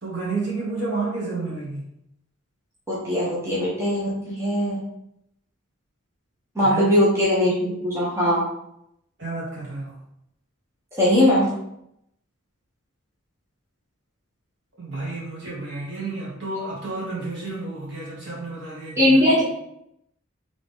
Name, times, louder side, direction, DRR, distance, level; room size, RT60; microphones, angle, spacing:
voice 1, 0.0-1.9 6.6-7.0 9.2-9.9 14.8-19.4, right 3 dB, 55° right, -6 dB, 1.7 m, -31 dB
voice 2, 2.9-4.8 6.5-8.4 10.9-11.5 19.0-19.4, left 1 dB, 15° right, -8 dB, 1.1 m, -20 dB
3.9 x 3.6 x 3.6 m, 0.78 s
head